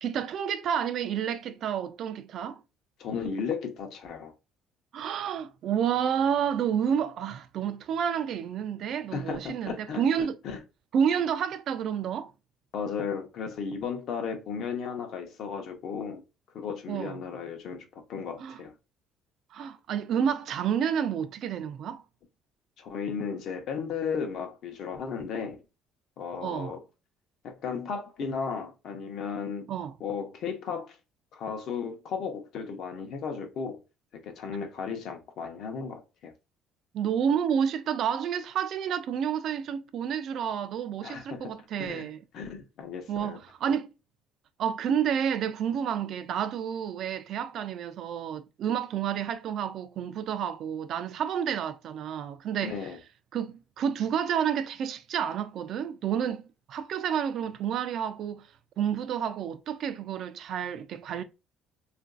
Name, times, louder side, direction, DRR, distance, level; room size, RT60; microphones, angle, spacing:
voice 1, 0.0-2.6 4.9-10.4 10.9-12.3 16.9-17.2 18.4-18.6 19.5-22.0 26.4-26.7 29.7-29.9 36.9-42.2 43.1-43.9 44.6-52.7 53.3-56.4 56.7-58.5 58.8-61.2, right 8 dB, 55° right, 0.3 m, -30 dB
voice 2, 3.0-4.3 9.1-10.6 12.7-16.2 16.5-18.7 22.8-25.6 26.2-26.8 27.4-29.7 30.0-31.0 31.3-33.8 34.1-36.3 41.0-41.5 41.8-42.1 42.3-43.4 52.6-53.0, left 6 dB, 60° left, 0.7 m, -35 dB
2.9 x 2.5 x 2.3 m
cardioid pair, 130°, 0 cm